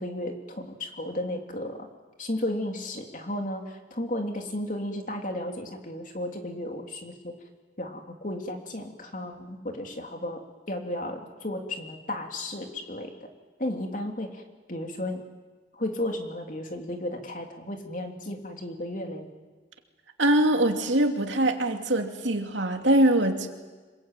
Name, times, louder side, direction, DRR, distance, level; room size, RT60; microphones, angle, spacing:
voice 1, 0.0-1.9 2.2-7.3 7.8-10.4 10.7-13.3 13.6-14.4 14.7-15.2 15.7-19.3, left 1 dB, 45° left, 3 dB, 3.2 m, -34 dB
voice 2, 20.2-23.5, right 1 dB, 85° right, 4 dB, 2.8 m, -23 dB
26.5 x 22.5 x 9.1 m, 1.3 s
head